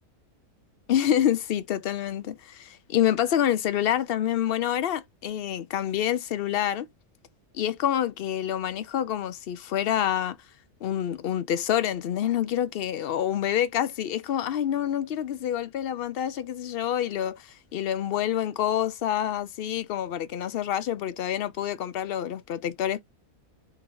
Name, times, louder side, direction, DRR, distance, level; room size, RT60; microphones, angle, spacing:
voice 1, 0.9-6.9 7.5-10.4 10.8-23.0, left 10 dB, 75° left, 0.5 m, -27 dB
4.0 x 2.5 x 4.5 m
omnidirectional pair, 1.6 m